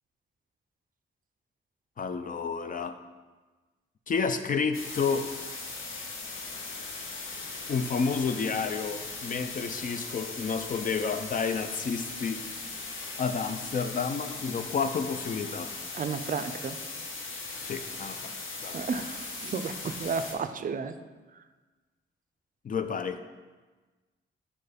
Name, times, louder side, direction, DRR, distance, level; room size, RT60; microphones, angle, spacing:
voice 1, 2.0-3.0 4.1-5.3 7.7-12.4 13.2-15.7 17.6-18.3 18.6-18.8 22.6-23.2, left 5 dB, 40° left, 9 dB, 0.5 m, -30 dB
sound 1, 4.7-20.3, left 3 dB, 80° left, 1.0 m, -39 dB
voice 2, 15.9-16.8 18.7-21.0, right 5 dB, 40° right, 10 dB, 0.4 m, -32 dB
6.8 x 4.2 x 5.1 m, 1.3 s
wide cardioid pair, 130°, 21 cm